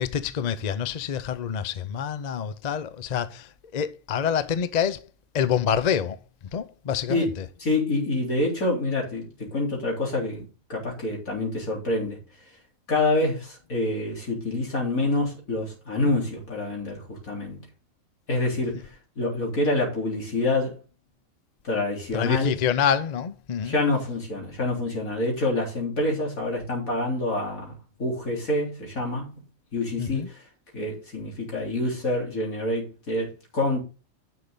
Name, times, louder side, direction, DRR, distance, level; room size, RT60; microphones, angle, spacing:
voice 1, 0.0-5.1 5.3-6.2 6.5-7.5 22.1-23.8 30.0-30.3, left 8 dB, 45° left, 0.5 m, -27 dB
voice 2, 7.6-12.2 12.9-17.7 18.3-20.8 21.6-22.5 23.6-29.3 29.7-30.4 30.7-33.8, left 2 dB, 80° left, 3.9 m, -27 dB
10.0 x 6.6 x 3.9 m
omnidirectional pair, 1.4 m